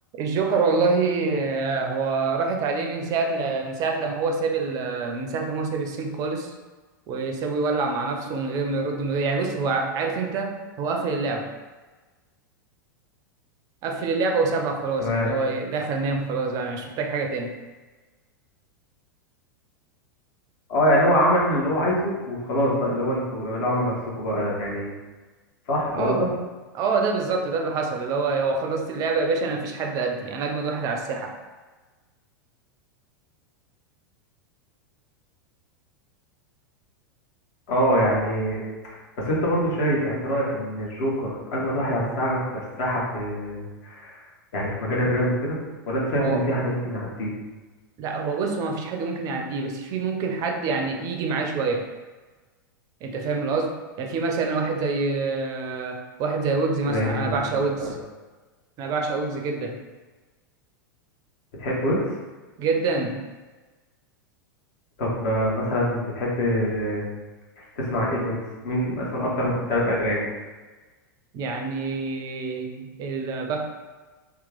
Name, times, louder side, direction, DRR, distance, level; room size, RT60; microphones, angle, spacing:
voice 1, 0.2-6.5 7.1-11.5 13.8-17.5 25.9-26.2 26.7-31.4 46.2-46.4 48.0-51.9 53.0-58.0 58.8-59.8 62.6-63.2 71.3-73.7, right 4 dB, 30° right, 3 dB, 0.5 m, -26 dB
voice 2, 15.0-15.3 20.7-24.9 25.7-26.3 37.7-44.2 44.5-45.6 45.9-47.3 56.8-57.9 61.6-62.1 65.0-67.0 67.6-68.4 68.6-70.3, equal, 45° left, -4 dB, 1.1 m, -24 dB
2.9 x 2.3 x 3.7 m, 1.3 s
figure-of-eight pair, 90°, 11 cm